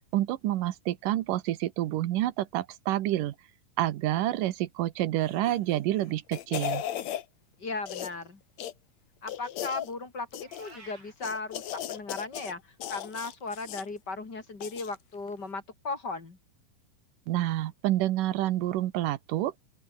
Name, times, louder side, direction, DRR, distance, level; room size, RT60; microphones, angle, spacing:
voice 1, 0.1-3.3 3.8-6.8 17.3-19.5, right 14 dB, 90° right, 2.7 m, -28 dB
sound 1, 5.4-5.7 6.1-7.2 7.9-8.2 8.6-8.7 9.3-9.9 10.3-10.8 11.2-12.5 12.8-13.9 14.6-15.0 15.3-15.4, left 11 dB, 65° left, 2.4 m, -36 dB
voice 2, 7.6-8.4 9.2-16.4, left 3 dB, 35° left, 3.4 m, -37 dB
Meow, 10.4-11.1, right 3 dB, 50° right, 9.1 m, -51 dB
open air
omnidirectional pair, 3.7 m